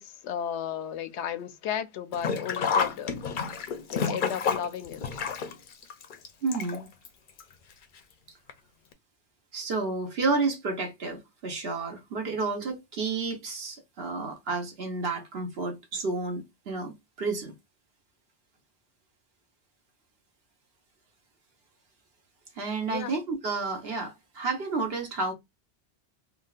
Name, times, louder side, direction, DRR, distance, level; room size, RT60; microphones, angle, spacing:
voice 1, 0.0-3.1 3.9-5.2 22.9-23.1, left 9 dB, 85° left, 0.9 m, -34 dB
Sink (filling or washing), 2.1-7.1 7.4-7.5 8.5-8.6 8.9-9.0, left 6 dB, 55° left, 0.6 m, -30 dB
voice 2, 6.4-6.9 9.5-17.5 22.6-25.3, right 3 dB, 65° right, 1.3 m, -31 dB
3.8 x 2.3 x 2.3 m
omnidirectional pair, 1.1 m